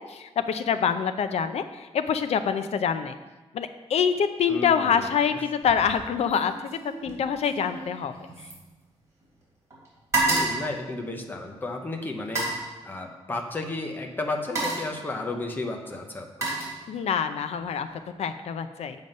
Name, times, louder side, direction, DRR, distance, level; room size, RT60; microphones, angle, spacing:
voice 1, 0.0-3.2 3.5-8.1 16.9-17.9 18.2-19.0, left 7 dB, 75° left, 9 dB, 0.6 m, -26 dB
voice 2, 4.5-5.1 10.3-12.5 12.8-16.5, left 2 dB, 20° left, 3 dB, 0.9 m, -33 dB
sound 1, 5.6-6.0 6.3-9.4 9.7-11.6 12.2-12.7 13.7-13.9 14.3-15.0 15.8-17.2 17.6-18.0, right 2 dB, 30° right, 3.3 m, -31 dB
7.8 x 7.0 x 5.3 m, 1.2 s
wide cardioid pair, 175°, 11 cm